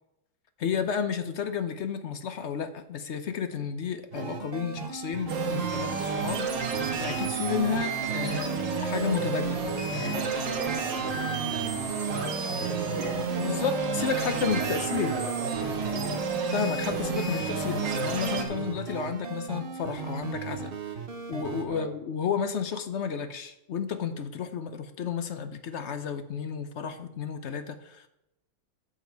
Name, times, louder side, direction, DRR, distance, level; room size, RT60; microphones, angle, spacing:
voice 1, 0.6-6.5 7.0-9.6 9.9-10.2 13.4-15.2 16.5-20.7 21.3-28.1, left 7 dB, 55° left, 10 dB, 0.8 m, -32 dB
sound 1, 4.1-21.6, right 6 dB, 40° right, 0.9 m, -37 dB
sound 2, 5.3-18.4, right 5 dB, 80° right, 2.0 m, -31 dB
voice 2, 9.9-13.7 14.0-14.3 14.6-16.1 21.7-21.9, right 2 dB, 60° right, -1 dB, 2.0 m, -40 dB
12.5 x 7.2 x 4.6 m, 0.89 s
omnidirectional pair, 2.0 m